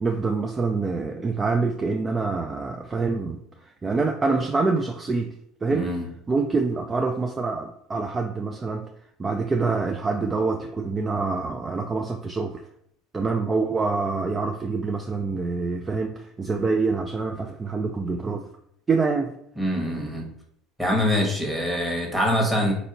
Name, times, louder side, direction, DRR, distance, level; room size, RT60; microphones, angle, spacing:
voice 1, 0.0-3.4 3.8-5.3 5.6-5.9 6.3-8.9 9.2-12.6 13.1-18.5 18.9-19.3, right 4 dB, 25° right, 4 dB, 0.3 m, -26 dB
voice 2, 5.7-6.0 19.6-20.3 20.8-22.7, equal, 5° right, -1 dB, 1.2 m, -24 dB
4.3 x 2.7 x 2.7 m, 0.69 s
supercardioid pair, 95°, 0 cm